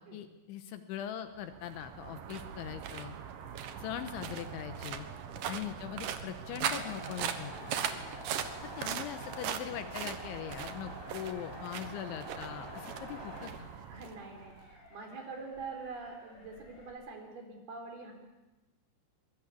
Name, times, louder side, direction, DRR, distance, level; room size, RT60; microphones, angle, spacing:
voice 1, 0.0-3.2 3.8-5.1 5.5-7.7 8.6-13.7, left 10 dB, 75° left, 9 dB, 3.3 m, -41 dB
sound 1, 1.3-14.7, right 9 dB, 75° right, 2.0 m, -40 dB
Motor vehicle (road) / Siren, 3.1-16.9, left 1 dB, 35° left, 7.6 m, -57 dB
sound 2, 6.6-13.5, left 1 dB, 5° left, 2.2 m, -47 dB
voice 2, 13.9-18.1, right 4 dB, 50° right, 3 dB, 5.5 m, -45 dB
25.0 x 22.0 x 8.5 m, 1.1 s
omnidirectional pair, 5.9 m